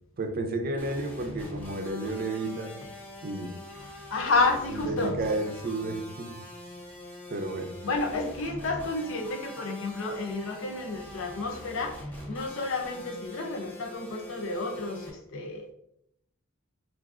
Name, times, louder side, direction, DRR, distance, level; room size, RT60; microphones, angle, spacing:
voice 1, 0.2-2.8 3.2-3.6 4.7-6.4 7.3-7.7, right 2 dB, 45° right, 5 dB, 0.5 m, -32 dB
sound 1, 0.8-15.1, left 1 dB, 10° left, 0.8 m, -43 dB
voice 2, 4.1-5.1 7.8-12.0 12.3-15.7, left 3 dB, 65° left, 3 dB, 0.6 m, -30 dB
6.1 x 2.5 x 2.4 m, 0.77 s
head